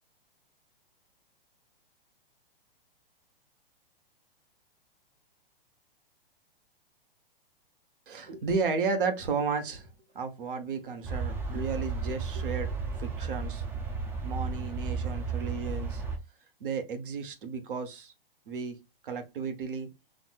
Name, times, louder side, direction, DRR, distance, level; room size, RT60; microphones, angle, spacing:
voice 1, 8.1-9.9 10.1-13.6 14.2-16.0 16.6-18.1 18.5-18.8 19.0-19.9, right 5 dB, 65° right, 1.1 m, -33 dB
sound 1, 11.0-16.2, right 4 dB, 10° right, 0.4 m, -33 dB
4.5 x 2.5 x 2.4 m
hypercardioid pair, 115°, 29 cm